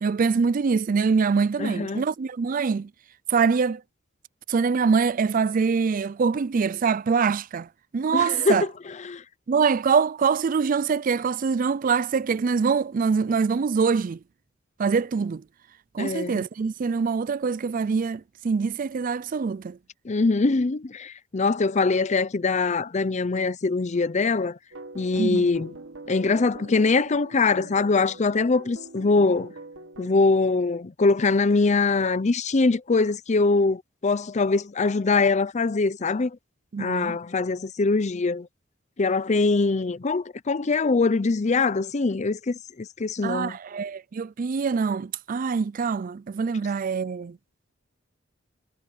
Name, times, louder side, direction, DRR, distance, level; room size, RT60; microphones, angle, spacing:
voice 1, 0.0-2.9 3.3-3.8 4.5-8.7 9.5-14.2 14.8-15.4 15.9-19.8 25.2-25.5 36.7-37.2 43.2-47.4, right 5 dB, 45° right, 0.4 m, -24 dB
voice 2, 1.6-2.0 8.1-8.7 9.0-9.2 16.0-16.4 20.0-24.6 24.9-25.7 26.1-29.5 30.0-36.4 36.8-38.5 39.0-43.6, left 3 dB, 35° left, 0.6 m, -23 dB
sound 1, 24.7-30.1, right 2 dB, 75° right, 1.6 m, -43 dB
head